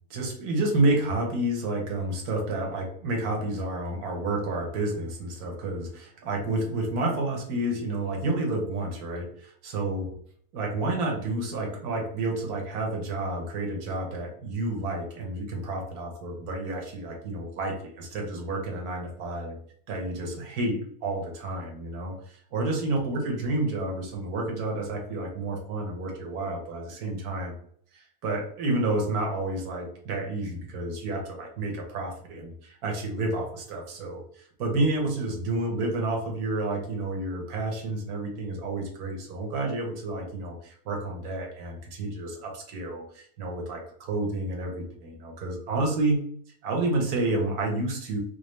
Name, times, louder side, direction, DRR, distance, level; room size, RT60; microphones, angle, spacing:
voice 1, 0.1-10.0 10.5-19.6 19.9-27.5 27.9-46.2 46.6-48.2, right 2 dB, 70° right, 1 dB, 1.5 m, -30 dB
5.0 x 2.3 x 3.2 m, 0.62 s
omnidirectional pair, 1.7 m